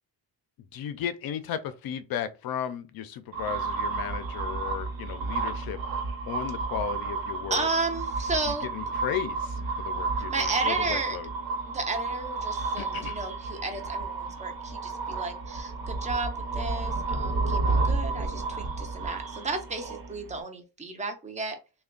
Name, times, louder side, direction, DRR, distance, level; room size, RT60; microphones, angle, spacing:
voice 1, 0.7-5.8 6.2-7.7 8.5-11.3 12.8-13.2, left 9 dB, 55° left, 0.5 m, -35 dB
sound 1, 3.3-20.4, right 3 dB, 50° right, 0.9 m, -31 dB
voice 2, 7.5-9.0 10.3-11.2 11.7-21.6, right 3 dB, 15° right, 0.5 m, -33 dB
3.3 x 2.2 x 3.7 m
cardioid pair, 175°, 43 cm